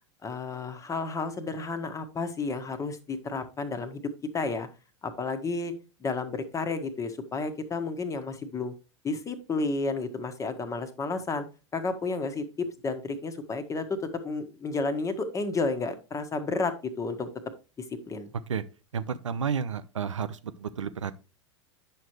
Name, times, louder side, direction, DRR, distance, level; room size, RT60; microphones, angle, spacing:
voice 1, 0.2-4.0 4.3-4.7 5.0-5.7 6.0-8.7 9.0-11.4 11.7-17.3 17.8-18.3, left 3 dB, 20° left, 1.3 m, -31 dB
voice 2, 18.9-21.1, right 7 dB, 85° right, 0.6 m, -31 dB
9.1 x 6.4 x 3.1 m
hypercardioid pair, 90°, 16 cm